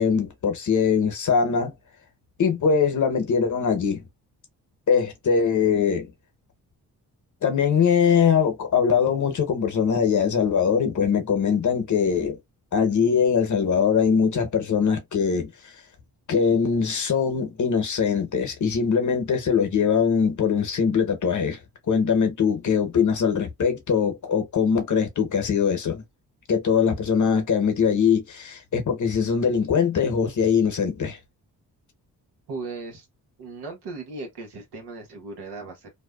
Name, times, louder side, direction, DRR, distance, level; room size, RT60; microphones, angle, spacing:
voice 1, 0.0-1.7 2.4-4.0 4.9-6.1 7.4-12.4 12.7-15.7 16.3-21.6 21.9-26.0 26.5-31.2, left 6 dB, 50° left, 0.8 m, -22 dB
voice 2, 32.5-33.1 33.4-35.9, right 3 dB, 90° right, 1.1 m, -37 dB
2.6 x 2.2 x 2.2 m
cardioid pair, 70°, 39 cm